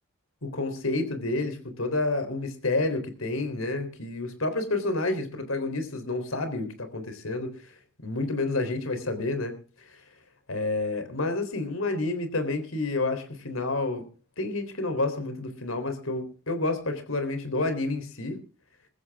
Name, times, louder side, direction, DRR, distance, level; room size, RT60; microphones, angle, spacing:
voice 1, 0.4-7.6 8.0-9.6 10.5-14.1 14.4-18.4, left 2 dB, 80° left, 8 dB, 3.8 m, -29 dB
21.5 x 14.5 x 3.7 m, 0.36 s
head